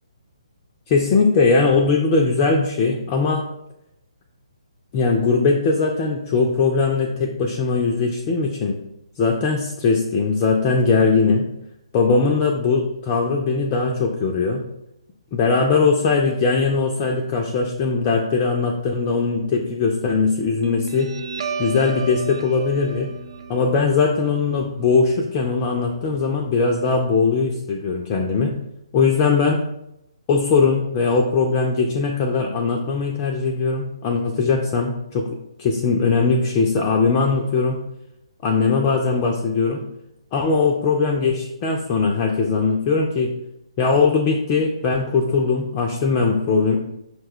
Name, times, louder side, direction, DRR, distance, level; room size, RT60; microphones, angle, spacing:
voice 1, 0.9-3.4 4.9-8.8 9.2-11.5 11.9-14.6 15.3-21.1 21.6-23.1 23.5-28.6 28.9-29.6 30.3-37.8 38.4-39.8 40.3-43.3 43.8-46.8, left 4 dB, 25° left, 1 dB, 0.3 m, -20 dB
Guitar, 20.6-27.6, right 5 dB, 55° right, 0.4 m, -35 dB
5.6 x 2.1 x 3.5 m, 0.83 s
figure-of-eight pair, 135°, 3 cm